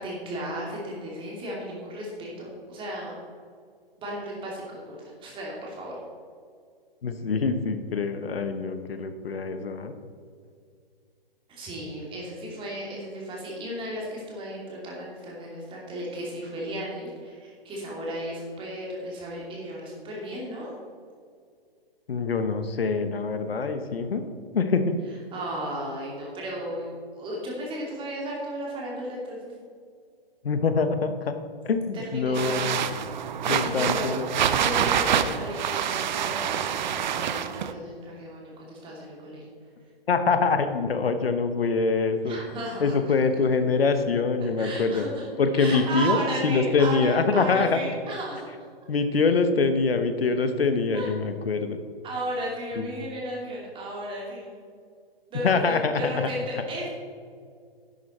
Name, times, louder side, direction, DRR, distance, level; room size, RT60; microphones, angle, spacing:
voice 1, 0.0-3.1 4.0-5.9 11.5-20.7 25.3-26.9 27.2-29.5 31.9-32.7 33.4-34.1 34.6-39.5 42.2-42.9 44.6-45.3 45.6-48.5 50.9-51.1 52.0-54.6 55.3-56.9, right 1 dB, 15° right, -3 dB, 2.7 m, -34 dB
voice 2, 7.0-9.9 22.1-24.9 30.4-31.4 31.6-32.8 33.5-34.5 40.1-42.4 42.8-45.0 45.4-46.2 46.4-47.8 48.9-51.8 52.7-52.9 55.4-56.2, left 4 dB, 75° left, 9 dB, 1.1 m, -24 dB
sound 1, 32.3-37.7, right 8 dB, 50° right, 0.7 m, -26 dB
11.5 x 7.8 x 4.3 m, 2.2 s
hypercardioid pair, 135°, 30 cm